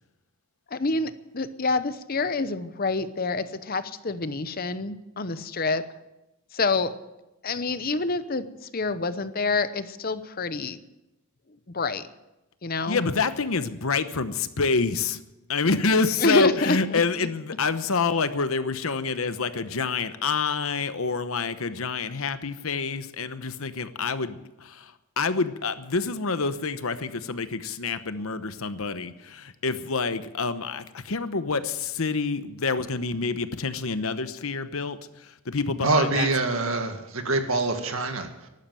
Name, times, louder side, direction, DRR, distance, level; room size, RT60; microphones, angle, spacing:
voice 1, 0.7-5.8 6.5-6.9 7.4-10.8 11.7-12.0 12.6-13.0 16.2-17.0, left 3 dB, 40° left, 0.8 m, -27 dB
voice 2, 12.9-15.2 15.5-36.3, left 4 dB, 70° left, 1.0 m, -27 dB
voice 3, 35.8-38.5, right 3 dB, 70° right, 2.0 m, -25 dB
14.5 x 12.0 x 7.8 m
head